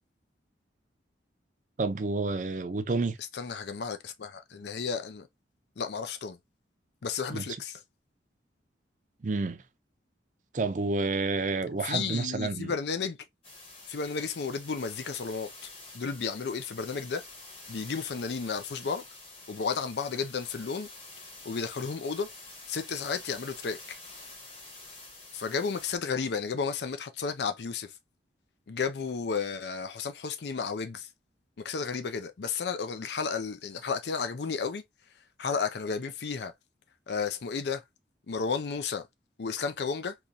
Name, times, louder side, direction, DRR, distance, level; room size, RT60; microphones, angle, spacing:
voice 1, 1.8-3.2 7.3-7.4 9.2-9.6 10.5-12.7, right 3 dB, 45° right, 0.5 m, -29 dB
voice 2, 3.2-5.3 5.8-6.4 7.0-7.8 11.8-13.2 13.9-17.2 17.7-19.0 19.5-20.9 21.4-22.3 22.7-24.0 25.3-27.9 28.7-31.1 31.6-34.8 35.4-36.5 37.1-37.8 38.3-39.1 39.4-40.2, left 5 dB, 65° left, 0.5 m, -33 dB
sound 1, 13.4-26.0, left 2 dB, 30° left, 1.4 m, -48 dB
3.8 x 2.9 x 2.6 m
head